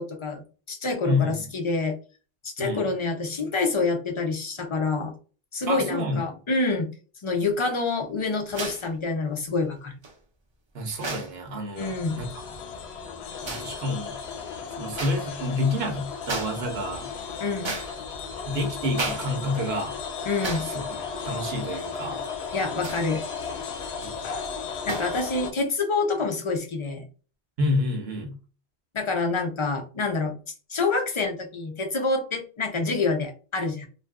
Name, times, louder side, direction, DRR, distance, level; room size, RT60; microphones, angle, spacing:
voice 1, 0.0-2.0 2.4-5.1 5.5-6.9 7.2-9.9 11.8-12.2 17.4-17.8 20.3-20.6 22.5-23.2 24.9-27.1 28.9-30.3 30.7-33.9, left 3 dB, 40° left, 0.4 m, -27 dB
voice 2, 5.7-6.2 10.7-12.5 13.4-14.4 14.7-17.1 18.4-20.0 20.6-22.2 24.0-24.3 27.6-28.4, left 1 dB, 75° right, 1.0 m, -29 dB
sound 1, 8.5-8.9 10.0-10.1 10.9-11.4 12.5-12.7 13.4-13.7 14.9-15.2 15.6-15.8 16.2-16.6 17.0-18.3 18.9-19.3 19.6-19.7 20.4-20.8 21.1-21.3 22.8-23.2 23.8-24.2 24.9-25.2, right 3 dB, 40° right, 0.4 m, -34 dB
sound 2, 11.8-25.5, left 6 dB, 80° left, 0.9 m, -35 dB
2.6 x 2.5 x 2.3 m
omnidirectional pair, 1.1 m